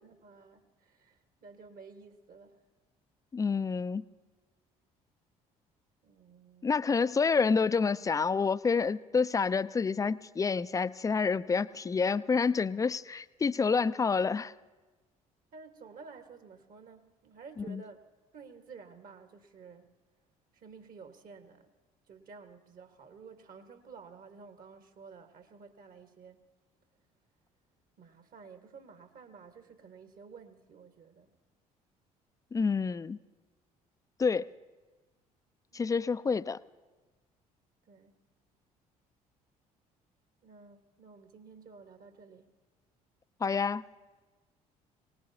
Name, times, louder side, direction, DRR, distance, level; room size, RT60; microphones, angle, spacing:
voice 1, 0.0-2.6 6.0-7.1 15.5-18.0 18.3-19.9 20.5-21.7 22.1-26.4 28.0-31.3 35.7-36.1 37.9-38.2 40.4-42.5, right 5 dB, 50° right, 8 dB, 1.4 m, -52 dB
voice 2, 3.3-4.0 6.6-14.5 17.7-17.8 32.5-33.2 34.2-34.5 35.7-36.6 43.4-43.8, left 5 dB, 20° left, 16 dB, 0.4 m, -28 dB
24.0 x 19.0 x 2.8 m, 1.3 s
figure-of-eight pair, 55°, 19 cm